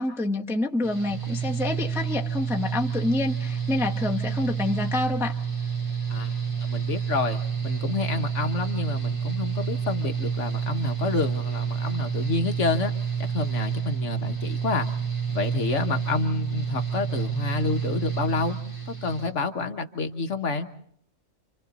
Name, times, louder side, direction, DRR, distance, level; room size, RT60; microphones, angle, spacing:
voice 1, 0.0-5.4, left 2 dB, ahead, 1 dB, 0.7 m, -27 dB
Mechanical fan, 0.8-19.3, right 7 dB, 20° right, 3.4 m, -29 dB
voice 2, 6.1-12.9 13.2-14.9 15.3-18.6 18.9-20.7, left 3 dB, 55° left, 6 dB, 1.4 m, -29 dB
29.0 x 26.0 x 4.1 m, 0.64 s
omnidirectional pair, 1.5 m